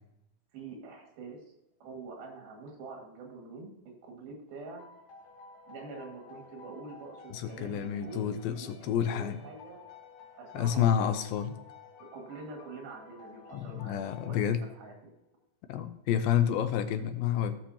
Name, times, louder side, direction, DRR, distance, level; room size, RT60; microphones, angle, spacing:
voice 1, 0.5-1.4 1.8-3.7 4.0-4.8 5.7-9.8 10.4-11.2 12.1-15.1, right 3 dB, 85° right, 0 dB, 3.9 m, -46 dB
sound 1, 4.8-15.2, left 5 dB, 65° left, 2.2 m, -53 dB
voice 2, 7.3-9.4 10.5-11.6 13.5-14.6 15.7-17.5, left 9 dB, 85° left, 9 dB, 2.5 m, -29 dB
16.5 x 5.9 x 2.8 m, 0.84 s
omnidirectional pair, 4.2 m